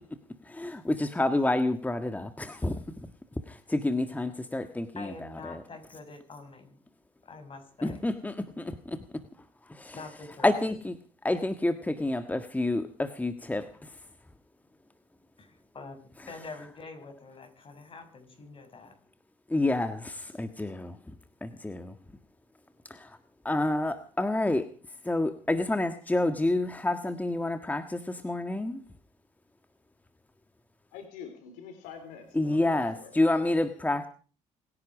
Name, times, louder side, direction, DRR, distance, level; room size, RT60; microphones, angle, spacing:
voice 1, 0.5-3.0 3.5-5.6 7.8-9.0 9.7-10.0 10.4-11.0 11.2-13.9 19.5-21.0 21.4-21.9 22.9-23.2 23.4-24.7 25.0-28.8 32.3-34.1, left 2 dB, 10° left, 9 dB, 1.6 m, -29 dB
voice 2, 4.9-6.8 7.2-8.0 9.9-10.7 15.4-16.0 16.3-18.9, left 3 dB, 40° left, 5 dB, 7.0 m, -45 dB
voice 3, 30.9-33.1, left 7 dB, 85° left, 7 dB, 3.9 m, -45 dB
27.0 x 10.5 x 5.0 m, 0.40 s
supercardioid pair, 65°, 14 cm